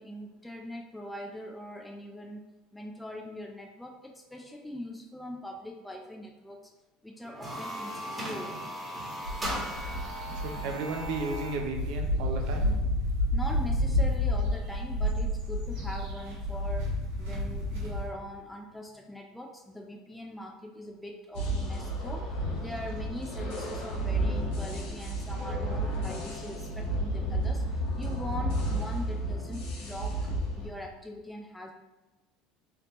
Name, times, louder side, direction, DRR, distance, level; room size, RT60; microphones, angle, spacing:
voice 1, 0.0-6.7 7.0-8.6 13.3-30.2 30.5-31.7, left 1 dB, 5° left, 1 dB, 0.4 m, -42 dB
sound 1, 7.2-11.7, right 1 dB, 15° right, 1.2 m, -37 dB
sound 2, 9.2-18.1, left 1 dB, 85° right, 1.3 m, -30 dB
voice 2, 10.4-12.8, right 3 dB, 70° right, 3 dB, 0.5 m, -34 dB
sound 3, 21.3-30.7, right 1 dB, 75° left, 1.0 m, -32 dB
3.4 x 2.7 x 3.0 m, 1.1 s
supercardioid pair, 90°, 0 cm